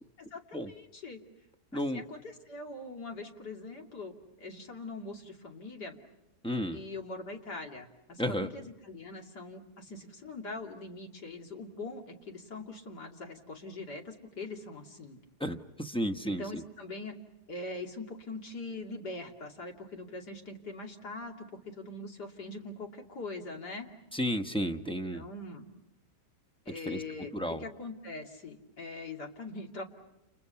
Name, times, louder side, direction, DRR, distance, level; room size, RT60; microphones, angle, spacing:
voice 1, 0.2-1.2 1.7-6.0 6.7-15.2 16.2-17.1 17.5-23.9 24.9-25.7 26.6-29.8, left 2 dB, 75° left, 2 dB, 3.3 m, -42 dB
voice 2, 1.7-2.0 6.4-6.8 8.2-8.5 15.4-16.6 24.1-25.2 26.9-27.0 27.3-27.6, equal, 5° left, 7 dB, 0.7 m, -32 dB
30.0 x 29.5 x 5.7 m, 0.90 s
omnidirectional pair, 1.8 m